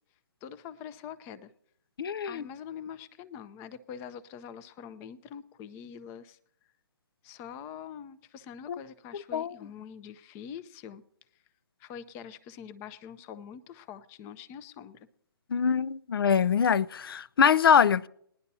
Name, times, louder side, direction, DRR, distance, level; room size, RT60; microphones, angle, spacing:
voice 1, 0.4-1.5 2.3-6.4 7.2-11.0 11.8-15.1, left 8 dB, 20° left, 0.6 m, -44 dB
voice 2, 2.0-2.4 8.7-8.8 9.1-9.5 15.5-18.1, left 7 dB, 65° left, 0.6 m, -24 dB
20.5 x 11.0 x 2.8 m
hypercardioid pair, 145°, 13 cm